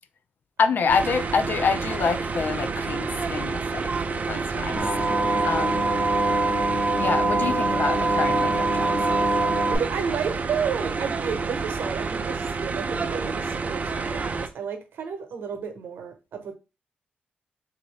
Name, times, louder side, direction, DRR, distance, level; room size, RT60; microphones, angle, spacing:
voice 1, 0.6-4.8 5.4-6.0 7.0-9.1, left 5 dB, 60° left, 0.4 m, -27 dB
sound 1, 0.9-14.5, right 4 dB, 45° right, 0.5 m, -29 dB
voice 2, 4.3-5.9 9.7-16.5, right 6 dB, 80° right, 0.8 m, -33 dB
sound 2, 4.8-9.8, right 2 dB, 10° left, 1.2 m, -24 dB
3.5 x 2.6 x 3.2 m
cardioid pair, 85°, 4 cm